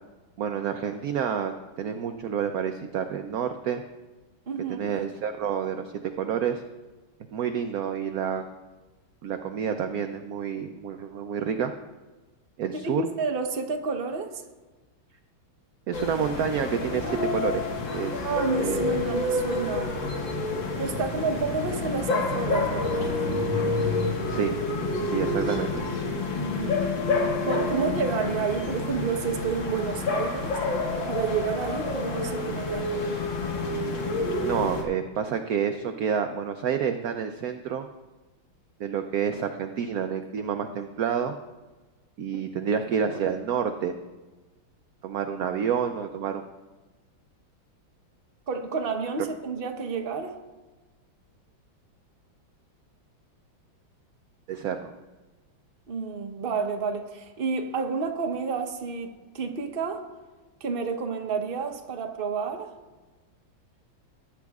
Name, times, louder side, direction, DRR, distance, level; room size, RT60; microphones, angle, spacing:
voice 1, 0.4-1.5 1.8-3.8 4.7-5.9 6.2-6.6 7.3-8.4 9.2-11.7 12.6-13.1 15.9-17.7 17.9-18.3 18.5-18.9 24.3-24.5 25.0-25.9 34.4-37.9 38.8-41.3 42.2-43.9 45.0-46.4 54.5-54.9, right 7 dB, 75° right, 0.8 m, -29 dB
voice 2, 4.5-4.8 12.8-14.4 18.2-19.9 20.8-23.2 26.4-26.8 27.4-30.6 31.0-33.2 42.3-42.4 45.5-45.6 48.5-50.4 55.9-60.1 60.6-62.7, right 5 dB, 40° right, 0.8 m, -30 dB
sound 1, 15.9-34.8, left 3 dB, 70° left, 2.2 m, -28 dB
19.0 x 10.0 x 2.4 m
omnidirectional pair, 2.2 m